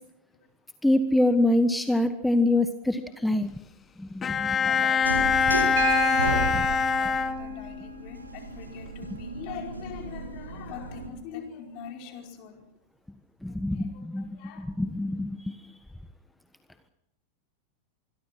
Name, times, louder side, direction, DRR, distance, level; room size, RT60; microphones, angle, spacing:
voice 1, 0.8-3.5 4.0-4.7 6.5-6.6 13.4-15.6, left 1 dB, 5° left, 10 dB, 1.4 m, -25 dB
Bowed string instrument, 4.2-7.9, left 5 dB, 20° left, 2.3 m, -24 dB
voice 2, 4.3-5.1 5.8-12.6 13.5-14.7, left 7 dB, 45° left, 4 dB, 4.9 m, -43 dB
sound 1, 5.0-11.1, right 2 dB, 80° right, 4.1 m, -34 dB
Piano, 5.8-9.8 11.3-11.4, right 5 dB, 60° right, 4.1 m, -36 dB
26.5 x 22.0 x 6.1 m, 0.82 s
figure-of-eight pair, 90°, 0 cm